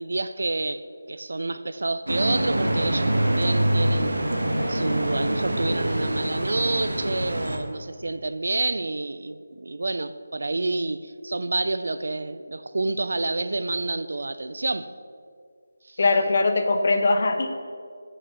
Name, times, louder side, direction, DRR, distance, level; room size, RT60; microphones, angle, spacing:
voice 1, 0.0-4.2 4.7-14.9 15.8-16.0, right 2 dB, 65° right, 0.4 m, -28 dB
sound 1, 2.1-7.6, right 1 dB, 80° right, 1.1 m, -25 dB
voice 2, 16.0-17.5, left 3 dB, 50° left, 0.7 m, -21 dB
7.9 x 6.2 x 5.2 m
figure-of-eight pair, 160°, 0 cm